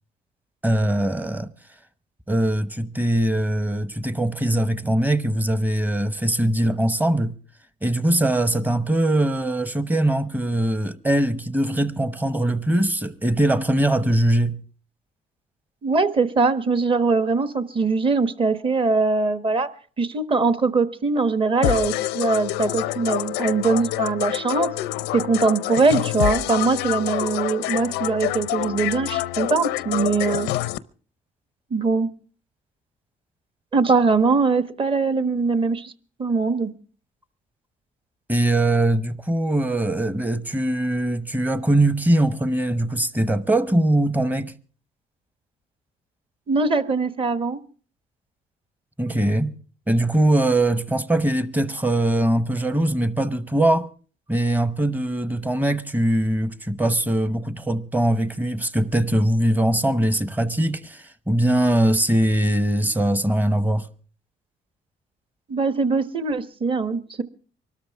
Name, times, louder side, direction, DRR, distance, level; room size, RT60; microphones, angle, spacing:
voice 1, 0.6-1.5 2.3-7.4 7.8-14.6 38.3-44.5 49.0-49.5 49.9-53.9 54.3-63.9, right 1 dB, 10° right, 0.9 m, -21 dB
voice 2, 15.8-19.7 20.0-24.7 25.1-30.5 31.7-32.1 33.7-35.9 36.2-36.7 46.5-47.6 65.5-67.2, right 4 dB, 30° right, 1.1 m, -22 dB
sound 1, 21.6-30.8, left 15 dB, 90° left, 0.6 m, -26 dB
24.0 x 13.0 x 3.5 m
cardioid pair, 110°, 17 cm